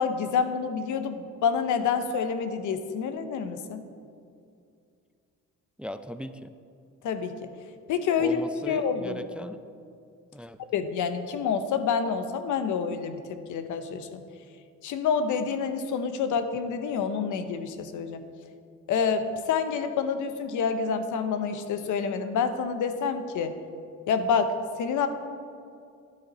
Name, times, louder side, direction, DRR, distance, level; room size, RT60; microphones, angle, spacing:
voice 1, 0.0-3.8 7.0-7.5 7.9-8.4 8.7-9.2 10.7-14.2 14.8-18.2 18.9-23.5 24.1-25.1, left 6 dB, 80° left, 9 dB, 0.9 m, -28 dB
voice 2, 5.8-6.5 8.2-9.6 10.3-10.6, equal, 5° right, 11 dB, 0.4 m, -38 dB
11.5 x 10.0 x 4.2 m, 2.4 s
cardioid pair, 90°, 30 cm